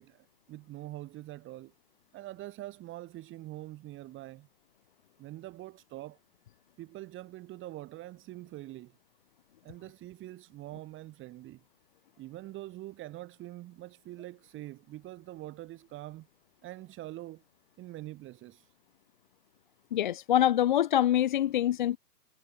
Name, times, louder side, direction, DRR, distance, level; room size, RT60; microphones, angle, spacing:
voice 1, 0.0-1.7 2.1-4.5 5.2-6.2 6.8-9.0 9.6-11.6 12.2-16.3 16.6-17.4 17.8-18.7, right 16 dB, 25° right, 5.8 m, -44 dB
voice 2, 19.9-22.0, left 11 dB, 30° left, 0.5 m, -25 dB
hypercardioid pair, 135°, 49 cm